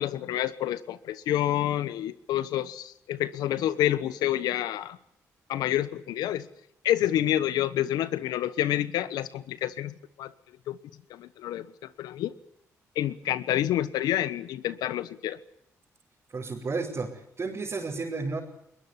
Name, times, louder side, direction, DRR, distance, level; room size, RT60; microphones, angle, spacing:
voice 1, 0.0-5.0 5.5-6.5 6.8-10.3 10.7-10.8 11.1-12.3 12.9-15.4, left 12 dB, 80° left, 15 dB, 1.2 m, -28 dB
voice 2, 16.3-18.4, right 4 dB, 45° right, -3 dB, 5.5 m, -32 dB
22.0 x 20.5 x 9.9 m, 0.73 s
supercardioid pair, 55°, 7 cm